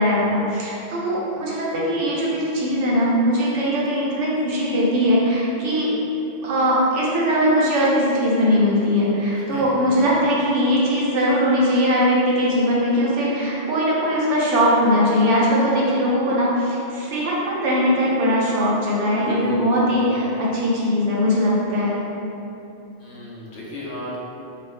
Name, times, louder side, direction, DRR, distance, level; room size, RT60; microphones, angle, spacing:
voice 1, 0.0-5.9 6.4-21.9, equal, 80° right, -5 dB, 1.0 m, -20 dB
voice 2, 9.3-9.9 19.1-20.4 23.0-24.2, left 1 dB, 70° left, -5 dB, 0.9 m, -34 dB
3.0 x 2.2 x 3.1 m, 2.7 s
omnidirectional pair, 1.2 m